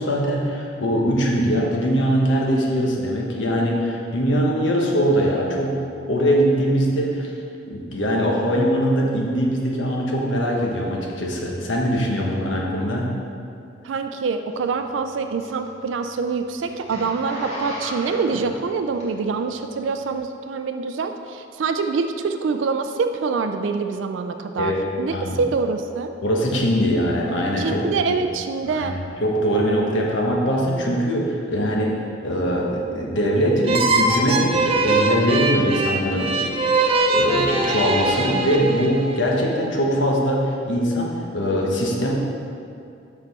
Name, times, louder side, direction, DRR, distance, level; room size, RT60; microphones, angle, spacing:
voice 1, 0.0-5.7 6.1-7.3 7.7-13.1 24.6-24.8 25.1-25.4 26.2-28.2 28.7-32.0 32.2-36.5 37.0-42.1, equal, 85° left, -2 dB, 1.1 m, -22 dB
voice 2, 13.8-26.1 27.6-28.9, right 4 dB, 85° right, 7 dB, 0.4 m, -25 dB
Zipper (clothing), 14.5-19.5 20.0-20.2, left 1 dB, 35° left, 1.4 m, -36 dB
sound 1, 33.6-39.2, right 2 dB, 30° right, 0.5 m, -21 dB
6.7 x 5.7 x 4.1 m, 2.5 s
head